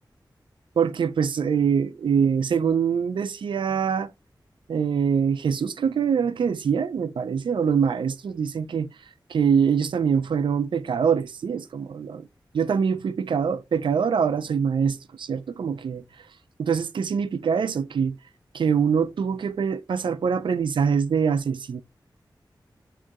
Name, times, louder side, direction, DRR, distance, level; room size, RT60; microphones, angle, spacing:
voice 1, 0.8-4.1 4.7-8.9 9.3-12.3 12.5-16.0 16.6-18.2 18.5-21.8, right 6 dB, 85° right, 0.4 m, -24 dB
7.4 x 2.7 x 2.4 m
wide cardioid pair, 65°, 8 cm